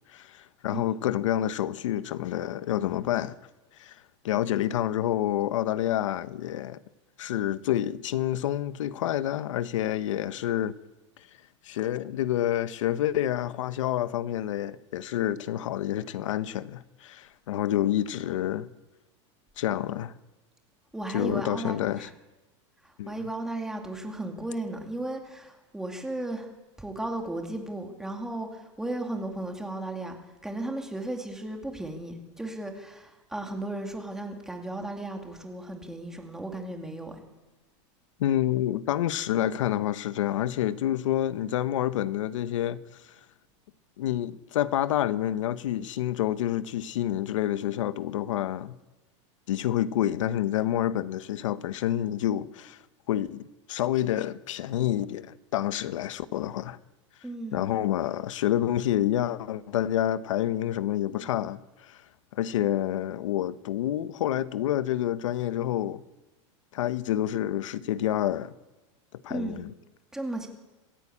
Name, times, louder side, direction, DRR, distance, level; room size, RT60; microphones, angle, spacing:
voice 1, 0.1-3.3 3.8-6.8 7.2-10.7 11.6-18.7 19.6-20.1 21.1-22.1 23.0-23.1 38.2-42.8 44.0-48.8 49.5-52.8 53.1-56.8 57.5-62.0 62.3-66.0 66.7-68.5 69.2-69.7, left 12 dB, 85° left, 1.1 m, -28 dB
voice 2, 20.9-22.1 22.8-26.5 26.8-30.2 30.4-37.2 57.2-57.7 69.3-69.6 70.1-70.5, right 2 dB, 5° right, 2.3 m, -35 dB
26.5 x 15.5 x 8.6 m
supercardioid pair, 175°, 16 cm